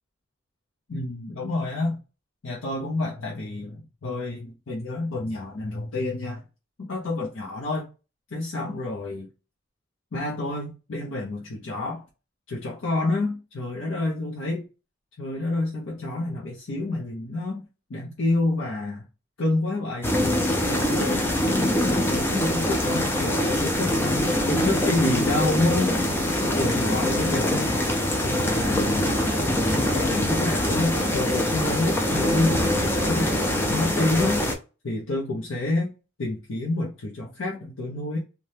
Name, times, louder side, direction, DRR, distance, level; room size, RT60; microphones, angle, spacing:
voice 1, 0.9-2.0 2.4-6.4 6.8-7.9 8.3-9.3 10.1-12.0 12.5-14.7 15.2-17.6 17.9-19.0 19.4-20.1 20.7-24.0 24.5-26.0 26.3-27.8 28.2-29.2 29.5-29.6 29.9-34.5 34.8-35.9 36.2-38.2, left 2 dB, 80° left, 0.7 m, -28 dB
sound 1, 20.0-34.5, left 1 dB, 10° left, 0.4 m, -24 dB
2.7 x 2.2 x 3.3 m
head